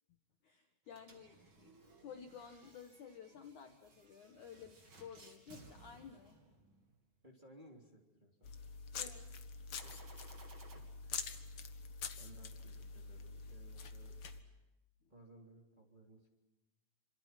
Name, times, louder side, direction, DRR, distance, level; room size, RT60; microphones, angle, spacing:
voice 1, 0.4-1.8 2.0-6.4 9.0-9.3, left 7 dB, 60° left, 5 dB, 2.3 m, -53 dB
sound 1, 0.9-7.0 9.7-10.8, right 3 dB, 30° right, 3.6 m, -61 dB
voice 2, 7.2-8.6 9.7-9.9 10.7-11.1 12.2-14.2 15.1-16.3, right 1 dB, 10° right, 0 dB, 2.9 m, -60 dB
sound 2, 8.4-14.4, left 5 dB, 85° left, 1.1 m, -46 dB
27.5 x 27.0 x 6.0 m, 1.1 s
omnidirectional pair, 5.0 m